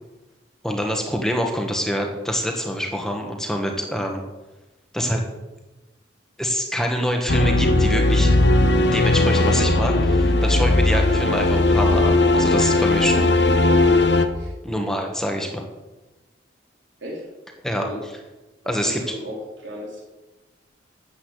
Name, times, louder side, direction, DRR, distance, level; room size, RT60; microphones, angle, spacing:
voice 1, 0.6-4.2 4.9-5.2 6.4-8.4 8.9-13.3 14.6-15.6 17.6-17.9 18.6-19.0, equal, 5° left, 2 dB, 1.5 m, -25 dB
sound 1, 7.3-14.3, left 2 dB, 65° left, 1.1 m, -18 dB
voice 2, 14.3-14.9 15.4-15.5 17.0-18.0 18.6-20.0, equal, 80° right, -3 dB, 3.9 m, -37 dB
13.0 x 8.4 x 8.2 m, 1.1 s
head